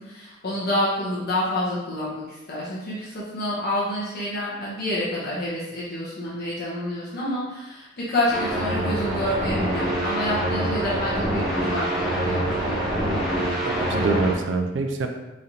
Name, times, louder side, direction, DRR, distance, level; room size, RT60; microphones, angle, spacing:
voice 1, 0.0-12.9, left 1 dB, 50° left, -7 dB, 0.8 m, -28 dB
sound 1, 8.3-14.3, right 1 dB, ahead, 1.0 m, -25 dB
voice 2, 13.4-15.1, right 3 dB, 65° right, 4 dB, 0.4 m, -26 dB
4.0 x 3.1 x 2.7 m, 1.0 s
head